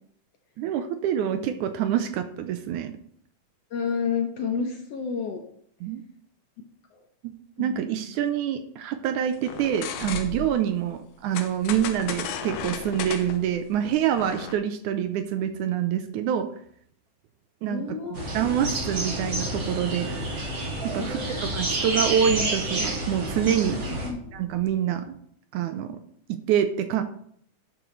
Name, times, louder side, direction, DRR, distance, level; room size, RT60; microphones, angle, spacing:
voice 1, 0.6-2.9 5.8-6.0 7.2-16.5 17.6-17.8 18.1-20.2 20.8-23.8 24.3-25.2 25.5-26.0 26.3-27.0, right 9 dB, 80° right, 9 dB, 2.0 m, -26 dB
voice 2, 3.7-5.4 6.9-7.0 7.6-7.9 17.7-18.3 20.9-21.2 23.9-24.2, left 6 dB, 70° left, 3 dB, 1.6 m, -30 dB
sound 1, 9.4-10.6 11.3-14.5, left 8 dB, 85° left, 2.4 m, -35 dB
sound 2, 18.1-24.1, right 1 dB, 35° right, 2.8 m, -29 dB
sound 3, 18.9-24.6, right 2 dB, 20° right, 1.3 m, -47 dB
11.0 x 7.9 x 3.2 m, 0.65 s
omnidirectional pair, 3.8 m